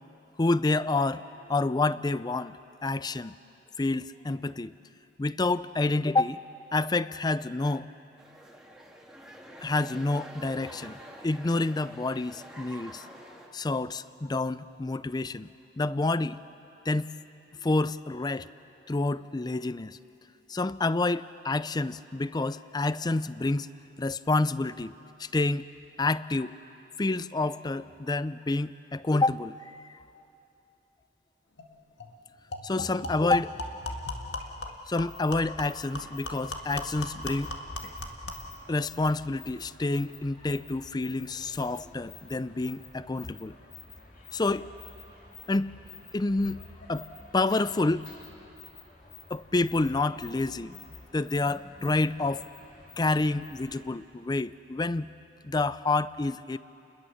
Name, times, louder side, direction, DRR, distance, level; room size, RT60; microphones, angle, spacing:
voice 1, 0.4-1.2 1.5-2.5 2.8-3.3 3.8-4.7 5.2-6.4 6.7-7.9 9.6-11.0 11.2-13.1 13.5-15.5 15.8-16.4 16.9-17.1 17.6-18.5 18.9-20.0 20.5-23.7 24.0-24.9 25.2-25.7 26.0-26.5 27.0-29.8 32.6-33.5 34.6-37.5 38.7-43.5 44.3-44.7 45.5-45.7 46.1-46.6 46.9-47.1 47.3-48.1 49.3-50.8 51.1-52.5 53.0-55.1 55.4-56.6, left 2 dB, 25° left, 16 dB, 0.5 m, -28 dB
sound 1, 8.2-13.5, right 1 dB, 5° right, 2.1 m, -47 dB
sound 2, 31.6-31.7 32.0-32.1 32.5-38.5, left 2 dB, 85° left, 1.9 m, -38 dB
sound 3, 35.0-53.9, left 4 dB, 55° left, 3.3 m, -50 dB
29.5 x 21.0 x 7.2 m, 2.8 s
head